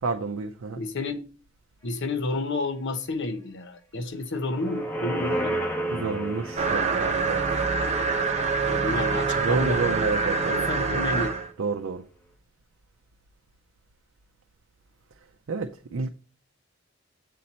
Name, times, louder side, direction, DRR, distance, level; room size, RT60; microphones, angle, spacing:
voice 1, 0.0-0.8 5.9-7.8 9.4-11.2 11.6-12.0 15.5-16.1, right 4 dB, 75° right, 0.5 m, -30 dB
voice 2, 0.8-1.2 1.8-5.5 8.7-9.8 10.5-11.4, left 2 dB, 65° left, 0.8 m, -30 dB
sound 1, 4.3-9.7 10.1-10.2, right 1 dB, 10° left, 1.5 m, -33 dB
sound 2, 6.6-11.5, right 4 dB, 35° right, 0.8 m, -25 dB
7.6 x 4.3 x 4.1 m
head